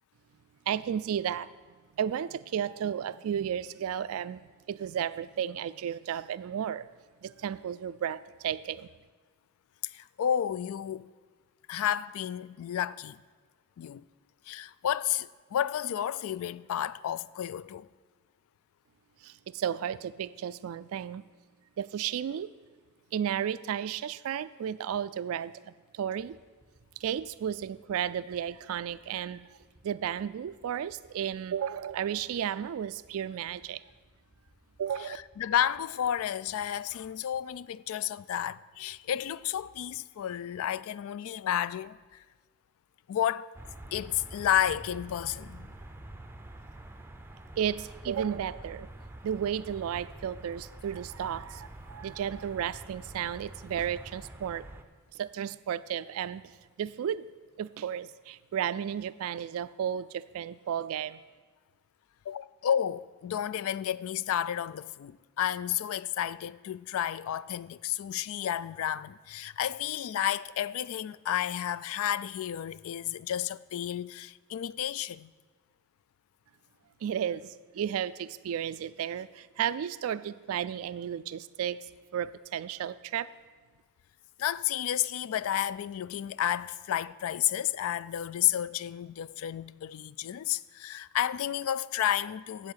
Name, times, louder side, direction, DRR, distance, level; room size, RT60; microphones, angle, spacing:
voice 1, 0.7-1.5 2.0-4.4 4.7-6.9 7.2-8.9 19.2-21.2 21.8-22.5 23.1-26.4 27.0-29.6 29.8-33.8 34.8-35.2 47.6-48.9 49.2-54.7 55.1-57.3 57.6-61.2 77.0-81.9 82.1-83.3, right 9 dB, 65° right, 0.3 m, -33 dB
voice 2, 9.8-11.1 11.7-13.2 13.8-14.1 14.5-17.9 35.1-42.2 43.1-43.5 43.9-45.7 62.3-75.3 84.4-92.7, left 10 dB, 65° left, 0.3 m, -31 dB
sound 1, 26.2-37.5, right 1 dB, 40° left, 1.6 m, -62 dB
sound 2, 43.5-54.8, right 1 dB, 10° right, 0.5 m, -47 dB
8.3 x 7.5 x 8.0 m
head